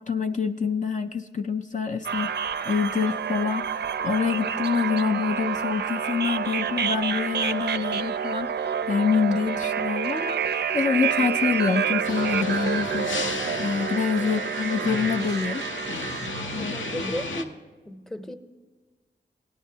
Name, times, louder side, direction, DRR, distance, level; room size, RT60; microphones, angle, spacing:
voice 1, 0.1-2.3 2.6-13.1 13.6-15.7 16.5-16.7, left 5 dB, 40° left, 5 dB, 0.4 m, -26 dB
sound 1, 2.0-17.1, right 7 dB, 60° right, 0.4 m, -28 dB
sound 2, 12.0-17.4, left 3 dB, 85° left, 0.7 m, -34 dB
voice 2, 16.5-17.6 17.8-18.4, left 1 dB, ahead, 8 dB, 0.7 m, -35 dB
16.0 x 10.5 x 2.7 m, 1.3 s
cardioid pair, 45°, 19 cm